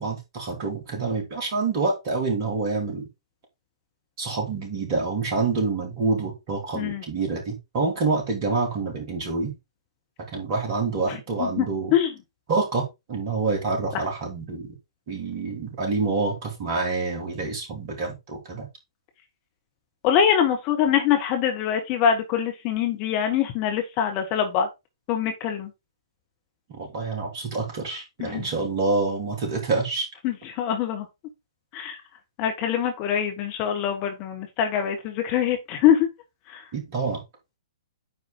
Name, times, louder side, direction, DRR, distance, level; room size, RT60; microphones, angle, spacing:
voice 1, 0.0-3.0 4.2-9.5 10.3-11.9 12.5-14.7 15.1-18.7 26.8-30.1 36.7-37.2, right 3 dB, 35° right, 3.7 m, -27 dB
voice 2, 11.1-11.7 11.9-12.1 13.9-14.0 20.0-24.7 25.1-25.7 28.2-28.5 30.2-31.1 31.7-32.0 32.4-36.1 36.5-36.6, left 9 dB, 30° left, 1.4 m, -24 dB
9.3 x 4.7 x 3.8 m
figure-of-eight pair, 120°, 3 cm